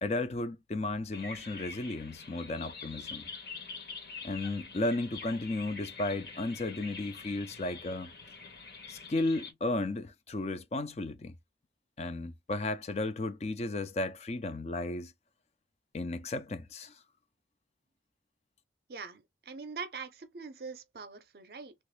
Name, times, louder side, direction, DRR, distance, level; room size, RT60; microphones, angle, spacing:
voice 1, 0.0-3.3 4.2-8.1 8.9-11.3 12.0-15.1 15.9-16.9, left 2 dB, 40° left, 0.4 m, -34 dB
sound 1, 1.1-9.5, left 4 dB, 60° left, 1.3 m, -46 dB
voice 2, 18.9-21.7, right 5 dB, 60° right, 0.5 m, -43 dB
3.0 x 2.4 x 3.1 m
head